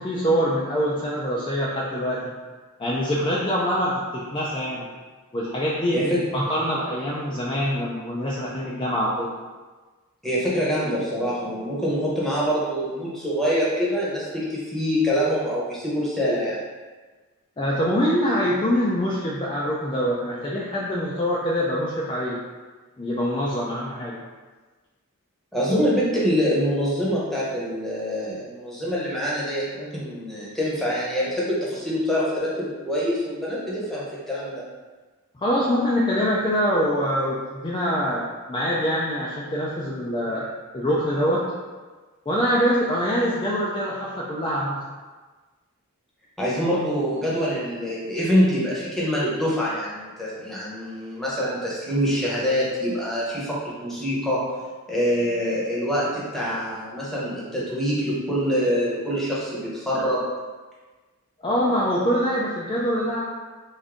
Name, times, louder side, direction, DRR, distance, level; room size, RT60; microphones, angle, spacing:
voice 1, 0.0-2.4 2.8-4.9 5.3-9.3 17.6-22.4 23.0-24.2 35.3-40.4 40.7-41.4 42.3-44.8 61.4-63.2, equal, 20° left, -6 dB, 0.4 m, -24 dB
voice 2, 10.2-16.6 25.5-34.6 46.4-54.4 54.9-60.3, equal, ahead, -7 dB, 0.9 m, -25 dB
3.6 x 2.6 x 3.6 m, 1.3 s
head